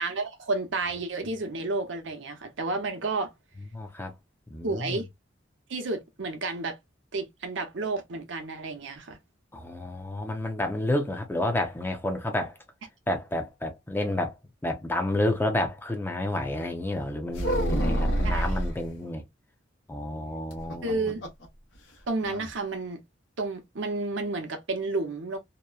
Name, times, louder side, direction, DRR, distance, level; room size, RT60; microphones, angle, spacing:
voice 1, 0.0-3.3 4.6-5.1 5.7-6.8 7.1-9.2 18.2-18.6 20.8-21.2 22.1-23.0 23.4-25.4, right 3 dB, 75° right, 0.7 m, -31 dB
voice 2, 3.7-4.1 4.5-5.0 9.5-12.5 13.1-14.3 14.6-19.2 19.9-21.0, left 1 dB, 10° left, 0.5 m, -30 dB
sound 1, 17.3-18.8 20.5-21.5 21.8-21.9 22.2-22.5, right 1 dB, 80° left, 1.0 m, -27 dB
2.8 x 2.1 x 2.3 m
head